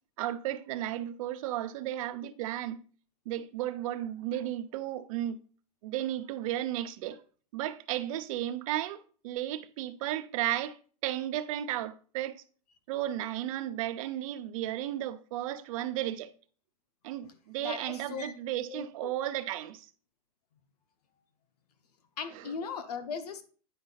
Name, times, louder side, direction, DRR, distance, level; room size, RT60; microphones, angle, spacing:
voice 1, 0.2-2.8 3.3-5.4 5.8-7.2 7.5-12.4 12.9-16.3 17.0-19.9 22.3-22.4, right 13 dB, 60° right, 0.7 m, -34 dB
voice 2, 17.6-18.3 18.7-19.2 22.2-23.4, left 5 dB, 85° left, 1.2 m, -38 dB
9.4 x 4.9 x 4.0 m
supercardioid pair, 145°, 19 cm